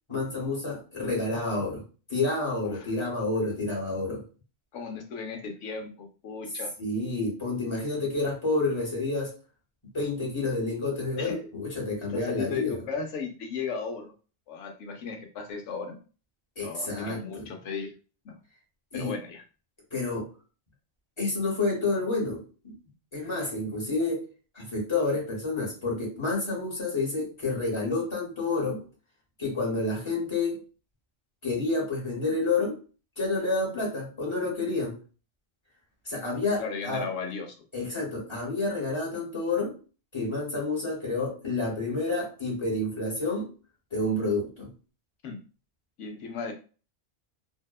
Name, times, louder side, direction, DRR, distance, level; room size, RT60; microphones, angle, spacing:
voice 1, 0.1-1.8 2.1-4.2 6.8-9.3 9.9-12.8 16.6-17.5 18.9-19.1 19.9-20.3 21.2-22.7 23.1-24.2 24.5-28.8 29.4-30.6 31.4-32.8 33.2-34.9 36.0-37.1 37.7-39.7 40.1-43.5 43.9-44.7, left 3 dB, 25° left, -3 dB, 0.9 m, -29 dB
voice 2, 4.7-6.7 11.2-11.5 12.1-14.1 14.5-16.0 16.6-17.9 18.2-18.4 18.9-19.4 36.5-37.9 45.2-45.4 46.0-46.5, left 5 dB, 85° left, 3 dB, 0.9 m, -36 dB
2.7 x 2.1 x 2.3 m, 0.36 s
omnidirectional pair, 1.2 m